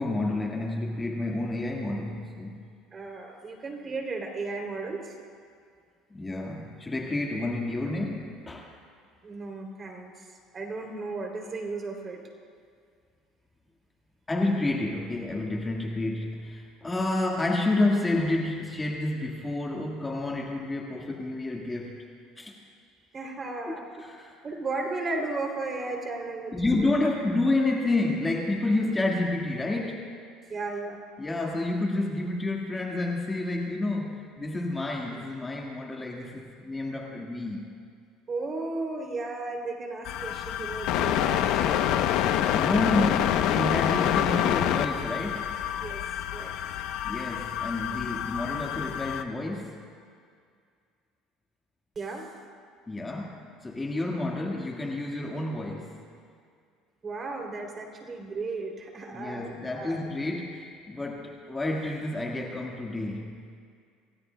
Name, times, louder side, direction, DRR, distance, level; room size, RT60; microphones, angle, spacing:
voice 1, 0.0-2.6 6.1-8.7 14.3-22.0 22.4-22.6 23.7-24.3 26.5-30.1 31.2-37.7 42.3-45.6 47.0-49.9 52.9-56.0 59.1-63.5, left 2 dB, 15° left, -1 dB, 1.6 m, -29 dB
voice 2, 2.9-5.1 9.2-10.3 10.5-12.2 23.1-23.9 24.4-26.9 30.5-31.0 38.3-41.7 45.8-46.0 46.3-46.5 51.9-52.3 57.0-60.0, right 3 dB, 30° right, 2 dB, 2.9 m, -35 dB
sound 1, 40.1-49.2, left 10 dB, 70° left, 0.7 m, -27 dB
28.0 x 16.5 x 2.2 m, 2.2 s
cardioid pair, 120°, 0 cm